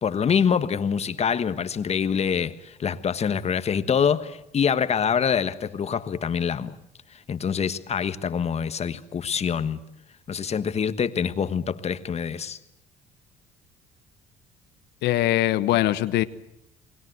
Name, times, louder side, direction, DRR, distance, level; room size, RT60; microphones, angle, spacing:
voice 1, 0.0-6.7 7.3-9.8 10.3-12.6, left 7 dB, 40° left, 1.4 m, -25 dB
voice 2, 15.0-16.2, left 14 dB, 85° left, 1.2 m, -22 dB
29.5 x 20.5 x 8.1 m
cardioid pair, 110°, 17 cm